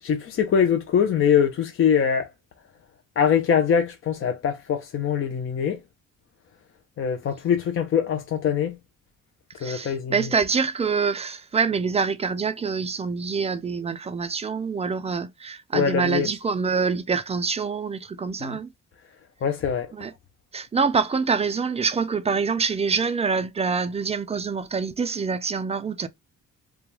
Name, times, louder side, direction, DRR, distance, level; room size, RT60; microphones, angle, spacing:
voice 1, 0.0-2.3 3.2-5.8 7.0-8.8 9.6-10.3 15.7-16.3 18.4-18.6 19.4-19.9, left 7 dB, 45° left, 0.5 m, -23 dB
voice 2, 9.6-18.7 19.9-20.1 20.5-26.1, right 5 dB, 20° right, 0.3 m, -25 dB
2.3 x 2.1 x 2.9 m
cardioid pair, 90°, 30 cm